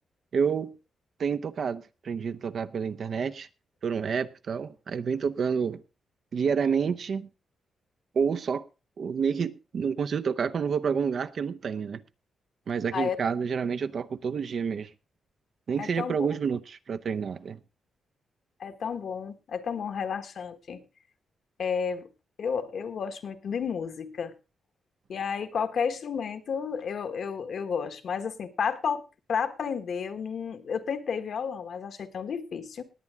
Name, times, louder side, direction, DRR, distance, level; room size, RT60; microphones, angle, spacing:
voice 1, 0.3-0.8 1.2-3.5 3.8-5.8 6.3-7.3 8.1-8.6 9.0-12.0 12.7-14.9 15.7-17.6, right 6 dB, 50° right, 0.7 m, -29 dB
voice 2, 15.8-16.3 18.6-20.8 21.6-22.0 22.4-24.3 25.1-29.0 29.3-32.8, left 6 dB, 55° left, 1.3 m, -31 dB
19.5 x 8.5 x 3.5 m
wide cardioid pair, 150°, 0 cm